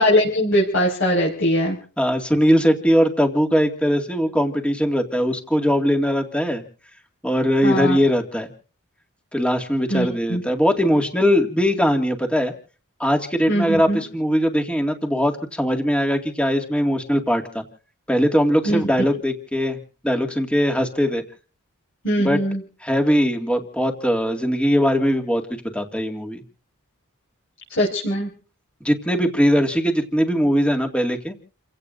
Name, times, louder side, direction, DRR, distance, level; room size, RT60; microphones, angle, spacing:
voice 1, 0.0-1.8 7.6-8.0 9.9-10.4 13.5-14.0 18.7-18.8 22.0-22.6 27.8-28.3, equal, 60° left, -4 dB, 5.3 m, -21 dB
voice 2, 2.0-6.6 7.2-8.5 9.3-12.5 13.0-17.6 18.1-19.8 20.0-21.2 22.2-22.4 22.8-26.4 28.8-31.3, equal, 5° left, 4 dB, 2.1 m, -20 dB
30.0 x 16.5 x 2.6 m, 0.41 s
head